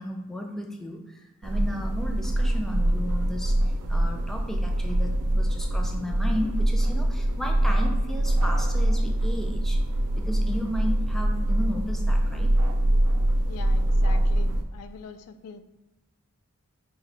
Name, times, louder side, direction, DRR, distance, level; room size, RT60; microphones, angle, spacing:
voice 1, 0.0-9.8 10.2-12.5, left 1 dB, ahead, 2 dB, 0.3 m, -34 dB
sound 1, 1.4-14.6, right 1 dB, 90° right, 0.5 m, -24 dB
voice 2, 13.5-15.6, left 5 dB, 80° left, 11 dB, 0.3 m, -43 dB
5.4 x 2.3 x 3.2 m, 1.1 s
head